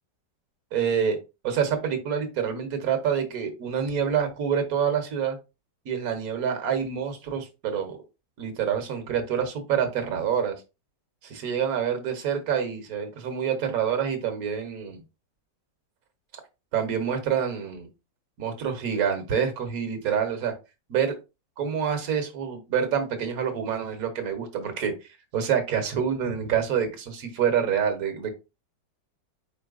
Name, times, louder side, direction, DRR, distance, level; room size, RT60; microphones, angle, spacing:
voice 1, 0.7-1.2 1.4-5.4 5.8-8.0 8.4-10.6 11.2-15.0 16.7-17.9 18.4-20.5 20.9-21.1 21.6-24.9 25.3-28.3, right 7 dB, 60° right, 7 dB, 1.4 m, -27 dB
4.7 x 4.3 x 2.4 m, 0.27 s
omnidirectional pair, 1.9 m